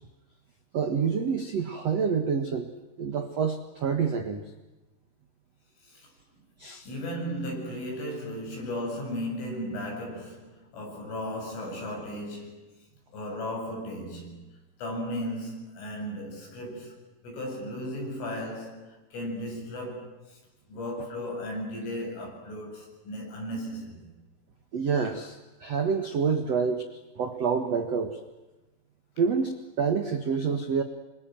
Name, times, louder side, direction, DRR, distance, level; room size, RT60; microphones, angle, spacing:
voice 1, 0.7-2.7 3.0-4.4 6.6-6.9 24.7-28.2 29.2-30.8, right 6 dB, 70° right, 1.5 m, -27 dB
voice 2, 5.8-6.1 6.9-12.8 13.1-14.5 14.8-20.4 20.7-24.1, equal, 75° left, 10.5 m, -36 dB
28.0 x 26.0 x 7.7 m
omnidirectional pair, 5.7 m